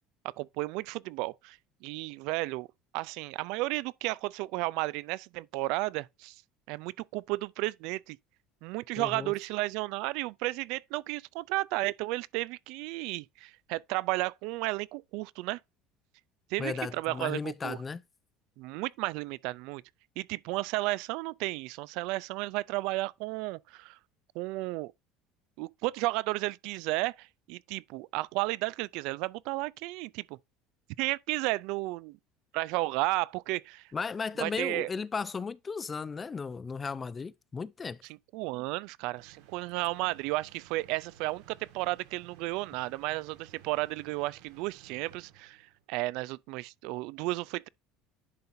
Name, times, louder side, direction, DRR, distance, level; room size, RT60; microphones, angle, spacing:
voice 1, 0.2-2.7 2.9-6.4 6.7-8.2 8.6-15.6 16.5-17.8 18.6-19.8 20.2-24.0 24.4-24.9 25.6-30.4 31.0-32.2 32.5-33.8 34.4-34.9 38.3-45.6 45.9-47.7, right 21 dB, 70° right, 0.3 m, -33 dB
voice 2, 9.0-9.3 16.6-18.0 33.9-38.0, left 5 dB, 20° left, 0.4 m, -35 dB
sound 1, 39.1-45.8, right 10 dB, 90° right, 1.6 m, -57 dB
10.5 x 3.9 x 2.6 m
cardioid pair, 130°, 0 cm